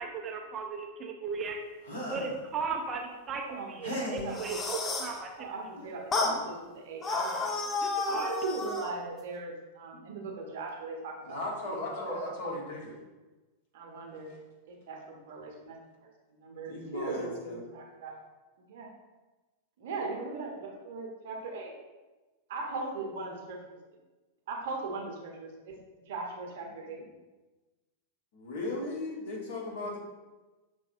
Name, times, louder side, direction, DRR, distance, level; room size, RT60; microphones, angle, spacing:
voice 1, 0.0-1.6 2.1-5.3 7.8-8.3, right 5 dB, 25° right, 2 dB, 0.5 m, -36 dB
sound 1, 1.8-2.4 3.8-4.4 5.8-5.9 6.2-6.5, equal, 70° left, 1.4 m, -37 dB
voice 2, 3.5-7.5 8.1-11.4 11.7-12.2 13.7-14.3 14.7-18.2 18.7-18.9 19.8-21.7 22.5-23.8 24.5-25.8 26.1-27.0, right 3 dB, 55° right, 1 dB, 0.9 m, -39 dB
sound 2, 4.2-5.2 6.1-6.4 7.0-8.9, left 3 dB, 20° left, 0.5 m, -31 dB
voice 3, 11.2-13.0 16.6-17.6 26.7-26.8 28.3-30.0, left 2 dB, 55° left, -2 dB, 1.2 m, -36 dB
6.1 x 3.1 x 2.6 m, 1.2 s
figure-of-eight pair, 90°, 0 cm